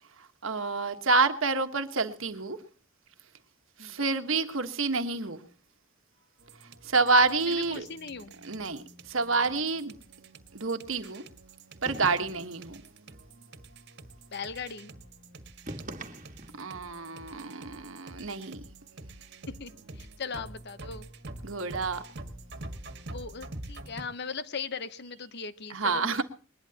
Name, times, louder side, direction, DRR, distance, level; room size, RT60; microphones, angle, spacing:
voice 1, 0.2-2.6 3.8-5.5 6.8-7.8 8.4-10.0 10.5-11.2 11.8-12.8 16.5-18.6 21.4-22.0 25.7-26.2, right 3 dB, 75° right, 1.4 m, -28 dB
sound 1, 6.4-24.0, right 2 dB, 55° right, 1.7 m, -47 dB
voice 2, 7.5-8.3 14.3-14.9 19.5-21.1 23.1-26.2, left 5 dB, 55° left, 0.9 m, -39 dB
sound 2, 11.8-12.6 15.6-16.7, right 1 dB, 40° right, 1.8 m, -41 dB
21.5 x 20.5 x 2.9 m
head